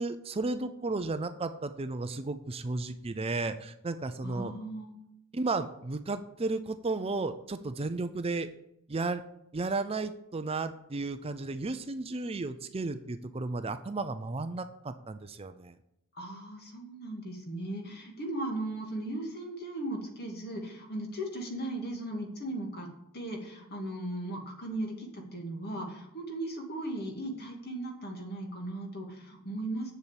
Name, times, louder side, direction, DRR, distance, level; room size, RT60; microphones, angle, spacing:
voice 1, 0.0-4.5 5.3-8.5 8.9-9.2 9.5-15.7, right 3 dB, 25° right, 10 dB, 0.5 m, -33 dB
voice 2, 4.2-5.0 16.1-29.9, right 1 dB, 45° left, 2 dB, 2.4 m, -37 dB
8.1 x 7.1 x 8.2 m, 0.80 s
head